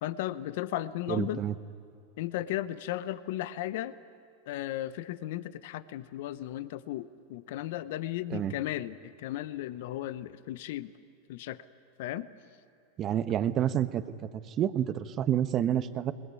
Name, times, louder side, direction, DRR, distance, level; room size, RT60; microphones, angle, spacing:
voice 1, 0.0-1.4 2.2-3.9 4.5-10.9 11.3-11.6 12.0-12.3, left 14 dB, 65° left, 15 dB, 0.8 m, -35 dB
voice 2, 1.1-1.5 8.3-8.5 13.0-14.0 14.5-16.1, right 10 dB, 35° right, 11 dB, 1.1 m, -28 dB
21.5 x 20.0 x 9.8 m, 2.4 s
hypercardioid pair, 105°, 0 cm